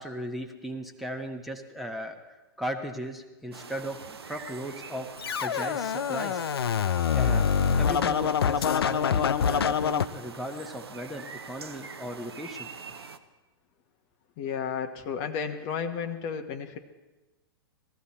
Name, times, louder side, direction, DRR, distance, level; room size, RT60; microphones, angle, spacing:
voice 1, 0.0-5.1 5.4-6.4 7.1-7.5 7.8-12.7, equal, ahead, 3 dB, 1.3 m, -37 dB
sound 1, 3.5-13.2, right 5 dB, 85° right, 0.9 m, -44 dB
Scratching (performance technique), 5.2-10.1, left 7 dB, 75° left, 0.5 m, -25 dB
voice 2, 14.4-16.8, left 6 dB, 40° left, 7 dB, 1.2 m, -32 dB
19.0 x 14.0 x 4.3 m, 1.1 s
hypercardioid pair, 110°, 13 cm